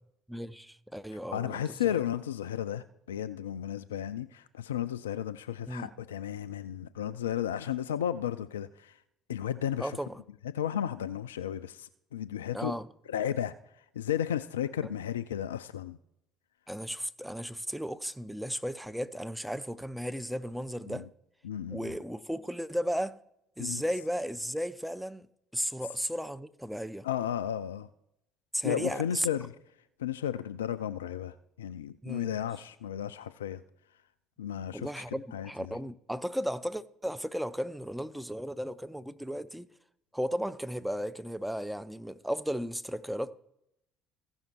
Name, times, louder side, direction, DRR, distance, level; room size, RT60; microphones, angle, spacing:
voice 1, 0.3-2.0 5.7-5.9 9.8-10.2 12.5-12.9 14.8-14.9 16.7-21.1 21.7-23.2 23.6-25.3 25.5-27.1 28.5-29.3 32.0-32.3 34.7-39.7 40.1-43.3, equal, 5° right, 0.6 m, -35 dB
voice 2, 1.3-9.0 9.3-10.0 10.5-12.7 13.1-13.5 13.9-16.0 20.9-21.0 21.4-21.9 23.6-23.8 27.0-27.9 28.6-29.5 30.0-33.6 34.4-35.0 35.3-35.7, left 10 dB, 75° left, 0.3 m, -34 dB
15.0 x 5.6 x 4.4 m
figure-of-eight pair, 55°, 0 cm